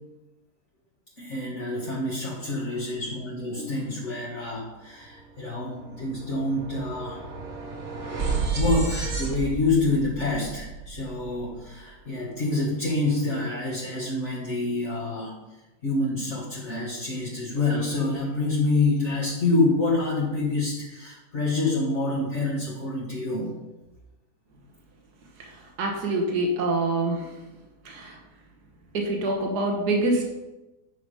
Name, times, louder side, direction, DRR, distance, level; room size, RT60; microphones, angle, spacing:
voice 1, 1.2-7.2 8.6-15.3 15.8-23.5, left 2 dB, 45° left, -6 dB, 1.9 m, -27 dB
sound 1, 5.0-5.2 5.5-11.7, right 4 dB, 50° right, 1.7 m, -32 dB
voice 2, 25.8-27.3 27.9-28.2 28.9-30.3, right 2 dB, 70° right, 1 dB, 1.9 m, -25 dB
10.0 x 5.9 x 4.9 m, 1.0 s
omnidirectional pair, 1.8 m